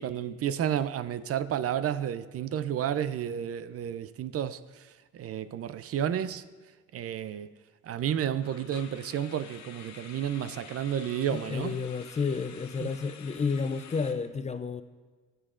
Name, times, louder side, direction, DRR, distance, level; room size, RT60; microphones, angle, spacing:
voice 1, 0.0-6.5 6.9-7.5 7.8-11.8 12.8-12.9, right 9 dB, 50° right, 0.4 m, -31 dB
sound 1, 2.4-2.5 2.8-3.0 3.5-3.6 8.4-14.1, left 7 dB, 65° left, 0.9 m, -49 dB
voice 2, 11.3-14.8, left 5 dB, 25° left, 0.3 m, -31 dB
17.5 x 6.6 x 2.5 m
cardioid pair, 90°, 30 cm